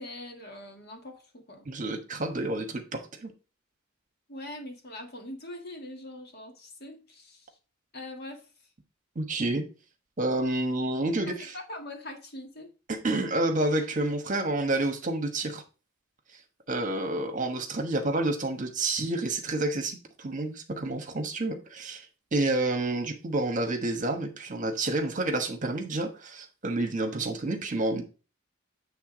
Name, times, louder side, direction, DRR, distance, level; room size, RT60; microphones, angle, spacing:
voice 1, 0.0-1.7 4.3-7.6 7.9-8.5 11.3-12.7, left 1 dB, 50° left, 1.5 m, -42 dB
voice 2, 1.7-3.3 9.1-9.6 10.2-11.6 12.9-15.6 16.7-22.0 22.3-28.0, right 2 dB, 40° right, 1.2 m, -29 dB
8.5 x 3.4 x 4.9 m
head